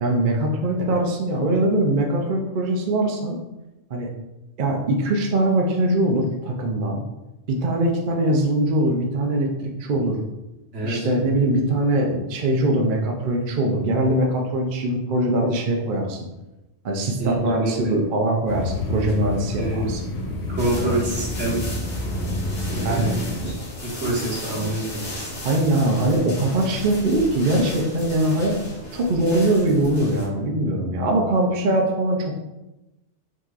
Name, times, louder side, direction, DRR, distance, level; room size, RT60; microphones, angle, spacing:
voice 1, 0.0-3.4 3.9-4.1 4.6-7.0 7.5-10.2 10.8-16.3 16.8-20.0 20.8-21.0 22.8-23.2 23.4-23.5 25.4-28.6 28.9-32.4, right 1 dB, 50° right, 0 dB, 0.7 m, -22 dB
voice 2, 10.7-11.1 17.2-18.0 19.6-19.9 20.5-21.6 22.7-23.3 23.8-25.3, right 2 dB, 85° right, -4 dB, 1.6 m, -26 dB
sound 1, 18.5-23.5, left 2 dB, 65° left, 1.0 m, -28 dB
sound 2, 20.6-30.3, left 1 dB, 80° left, 1.5 m, -36 dB
6.0 x 3.0 x 2.5 m, 1.0 s
omnidirectional pair, 1.2 m